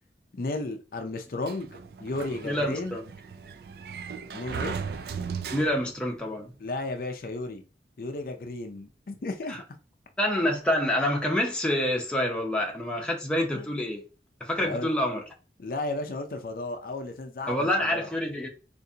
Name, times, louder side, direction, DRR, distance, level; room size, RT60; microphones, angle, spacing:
voice 1, 0.3-3.0 4.3-4.8 6.6-7.6 8.0-9.6 13.5-13.7 14.6-14.9 15.6-18.1, left 2 dB, 50° left, 0.5 m, -34 dB
Sliding door, 1.4-6.1, right 5 dB, 60° right, 0.3 m, -37 dB
voice 2, 2.4-3.0 5.5-6.5 9.5-9.6 10.2-14.0 14.4-15.2 17.5-18.5, left 1 dB, 5° left, 0.6 m, -27 dB
3.8 x 2.6 x 2.7 m
head